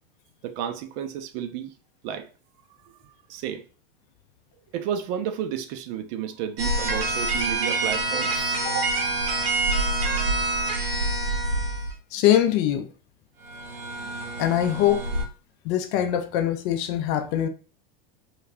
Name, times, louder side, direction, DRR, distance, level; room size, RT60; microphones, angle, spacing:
voice 1, 0.4-1.7 2.0-2.3 2.8-3.6 4.7-9.1, right 9 dB, 45° right, 0.5 m, -32 dB
sound 1, 6.6-11.9 13.4-15.2, right 2 dB, 80° right, 0.8 m, -26 dB
voice 2, 12.1-12.9 14.4-15.1 15.6-17.5, left 11 dB, 45° left, 0.5 m, -23 dB
2.3 x 2.3 x 3.4 m
hypercardioid pair, 90°, 29 cm